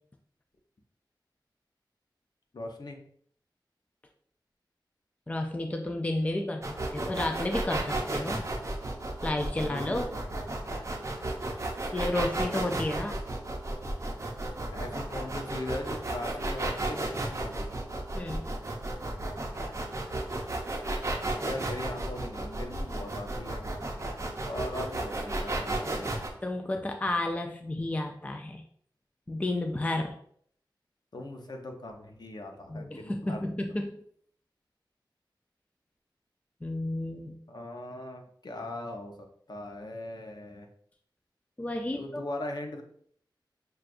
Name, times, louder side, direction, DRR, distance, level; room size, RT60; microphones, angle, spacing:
voice 1, 2.5-3.0 9.7-10.1 14.7-17.7 21.4-23.7 24.5-26.2 31.1-33.4 37.5-39.1 39.5-40.7 41.9-42.8, left 1 dB, 60° left, 3 dB, 0.6 m, -39 dB
voice 2, 5.3-8.4 9.2-10.0 11.9-13.2 18.2-18.5 26.4-28.6 29.3-30.2 32.7-33.9 36.6-37.4 41.6-42.3, left 1 dB, 15° left, 4 dB, 0.4 m, -31 dB
sound 1, 6.6-26.3, right 2 dB, 40° right, 0.6 m, -33 dB
6.2 x 2.3 x 2.5 m, 0.63 s
wide cardioid pair, 80°, 8 cm